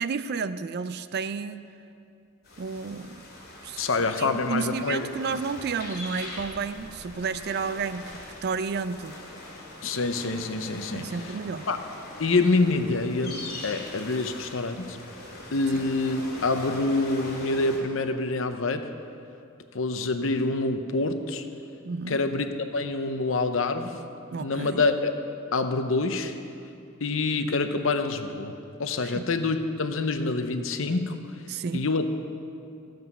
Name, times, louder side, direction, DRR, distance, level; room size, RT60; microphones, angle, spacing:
voice 1, 0.0-1.7 2.6-3.3 3.6-9.2 10.9-11.7 15.7-15.8 21.8-22.2 24.3-24.9 29.0-29.3 31.5-31.9, right 5 dB, 50° right, 13 dB, 0.4 m, -32 dB
sound 1, 2.4-17.8, left 2 dB, 50° left, 2.6 m, -42 dB
voice 2, 3.8-5.1 9.8-11.1 11.7-11.8 12.2-15.0 15.5-18.9 19.7-21.5 22.1-24.0 24.4-25.1 25.5-26.4 27.0-28.5 28.8-31.5 31.7-32.1, left 3 dB, 70° left, 8 dB, 0.7 m, -26 dB
13.0 x 7.8 x 5.5 m, 2.5 s
head